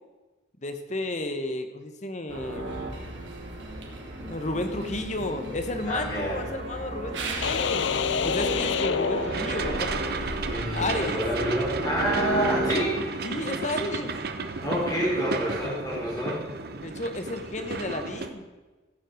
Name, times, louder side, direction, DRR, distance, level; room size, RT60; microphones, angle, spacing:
voice 1, 0.6-2.6 4.3-7.8 8.2-10.0 10.7-11.2 13.2-14.1 16.8-18.5, left 2 dB, 40° left, 7 dB, 1.1 m, -32 dB
sound 1, 2.3-12.7, right 1 dB, 85° right, 2.5 m, -33 dB
voice 2, 5.8-6.4 10.4-13.3 14.6-16.4, equal, 20° left, -4 dB, 4.1 m, -28 dB
sound 2, 7.4-10.0, left 6 dB, 80° left, 0.5 m, -28 dB
sound 3, 9.3-18.3, right 4 dB, 55° right, 0.8 m, -33 dB
15.0 x 7.5 x 6.3 m, 1.2 s
head